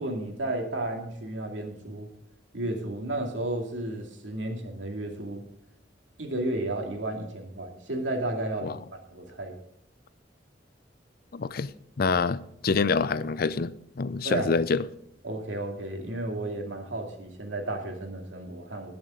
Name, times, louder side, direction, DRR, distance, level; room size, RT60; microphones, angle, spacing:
voice 1, 0.0-2.1 2.5-5.4 6.2-9.6 14.2-14.5 15.2-18.9, right 1 dB, 85° right, 2.5 m, -33 dB
voice 2, 11.3-11.7 12.0-14.8, left 4 dB, 55° left, 0.5 m, -26 dB
20.5 x 7.1 x 3.8 m
head